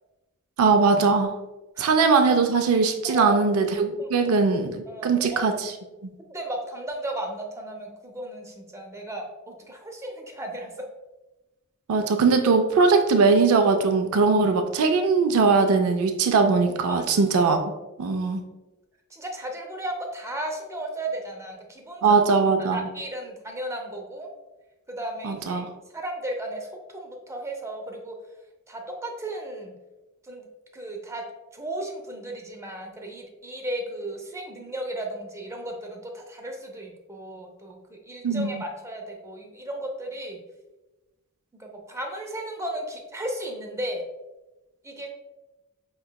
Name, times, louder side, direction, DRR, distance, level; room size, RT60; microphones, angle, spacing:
voice 1, 0.6-1.3 1.8-5.7 6.0-6.1 11.9-17.6 18.0-18.4 22.0-22.9 25.2-25.7 38.2-38.6, right 4 dB, 75° right, 6 dB, 0.4 m, -20 dB
voice 2, 3.0-3.4 4.0-4.1 4.9-5.4 6.3-10.7 16.9-17.2 19.1-22.2 22.7-24.3 24.9-25.6 25.9-28.2 28.7-29.7 30.2-30.5 30.7-31.2 31.5-40.4 41.5-44.0 44.8-45.1, right 1 dB, 15° right, 2 dB, 0.6 m, -35 dB
5.2 x 3.0 x 2.2 m, 1.1 s
head